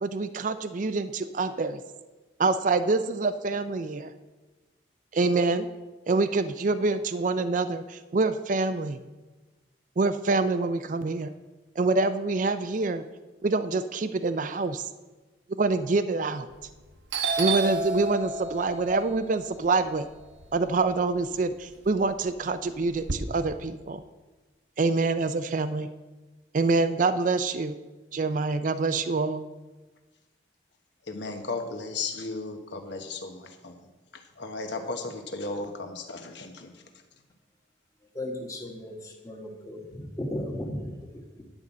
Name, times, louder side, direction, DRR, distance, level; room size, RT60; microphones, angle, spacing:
voice 1, 0.0-1.8 2.4-4.1 5.1-5.7 6.1-9.0 10.0-11.3 11.8-13.0 13.4-14.9 15.5-16.5 17.4-20.1 20.5-24.0 24.8-25.9 26.5-27.7 28.1-29.4, right 3 dB, 40° right, 11 dB, 0.4 m, -26 dB
Doorbell, 16.5-16.8 17.1-21.2 21.6-23.1, right 3 dB, 70° right, 0.9 m, -32 dB
voice 2, 31.0-33.9 34.1-36.8, left 3 dB, 65° left, 5 dB, 1.3 m, -35 dB
voice 3, 38.1-41.4, left 1 dB, 15° left, 0 dB, 1.5 m, -36 dB
10.5 x 5.4 x 7.4 m, 1.2 s
head